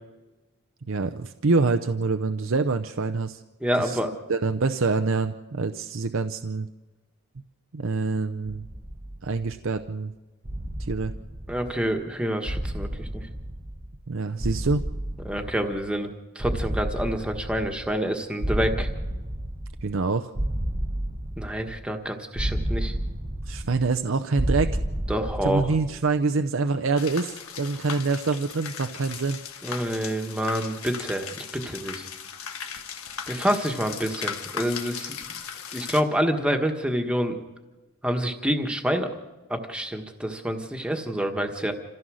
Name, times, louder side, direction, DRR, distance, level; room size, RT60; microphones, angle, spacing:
voice 1, 0.8-3.4 3.8-4.0 4.3-6.7 7.7-8.6 9.2-10.1 10.8-11.1 14.1-14.8 19.8-20.3 23.5-24.8 25.4-29.4, right 3 dB, 65° right, 7 dB, 0.6 m, -26 dB
voice 2, 3.6-4.2 11.5-13.3 15.2-18.9 21.4-22.9 25.1-25.6 29.6-32.0 33.3-35.2 35.7-37.4 38.0-39.1 39.5-41.7, equal, 5° right, 4 dB, 1.4 m, -27 dB
sound 1, 8.5-9.8 10.4-12.0 12.4-14.1 14.4-16.0 16.4-18.1 18.4-20.0 20.4-21.9 22.4-24.0 24.4-26.0, right 1 dB, 25° right, 1.0 m, -31 dB
sound 2, 27.0-36.0, left 7 dB, 80° left, 1.5 m, -37 dB
27.5 x 15.5 x 6.3 m, 1.2 s
head